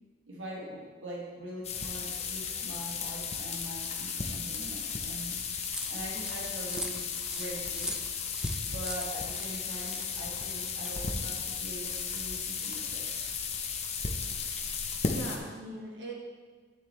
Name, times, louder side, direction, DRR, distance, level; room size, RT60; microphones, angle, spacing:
voice 1, 0.3-5.4 5.9-7.0 7.3-8.0 8.7-13.1, right 1 dB, 85° right, -3 dB, 1.5 m, -43 dB
sound 1, 1.6-15.4, left 5 dB, 35° left, 0.8 m, -35 dB
Digital fitness machine, 5.7-11.0, right 1 dB, 5° right, 0.3 m, -43 dB
voice 2, 14.3-14.6 15.0-16.1, right 1 dB, 65° right, -2 dB, 1.7 m, -42 dB
10.0 x 7.0 x 3.4 m, 1.5 s
head